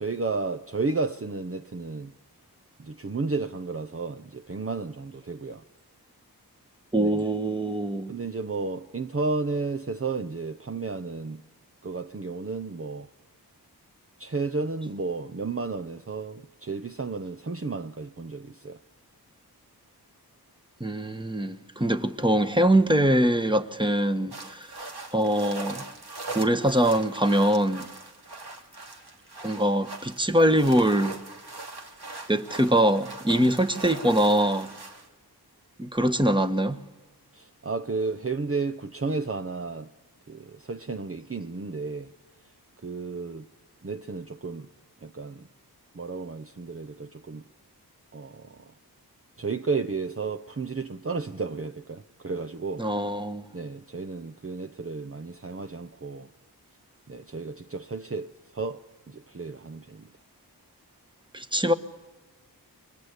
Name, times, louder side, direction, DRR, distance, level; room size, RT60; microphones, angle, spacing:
voice 1, 0.0-2.1 2.8-5.6 6.9-7.2 8.1-11.4 11.8-13.1 14.2-18.8 37.3-39.9 40.3-42.1 42.8-43.5 43.8-44.7 45.0-45.5 45.9-47.4 48.1-48.7 49.4-52.9 53.5-56.3 57.1-60.1, right 4 dB, 35° right, 0.8 m, -32 dB
voice 2, 6.9-8.1 20.8-24.7 25.1-25.8 26.3-27.9 29.4-31.2 32.3-34.7 35.8-36.8 52.8-53.4 61.3-61.7, right 1 dB, 10° right, 1.4 m, -23 dB
sound 1, 24.3-35.1, right 2 dB, 75° right, 2.5 m, -41 dB
29.5 x 24.0 x 8.3 m
wide cardioid pair, 65°, 39 cm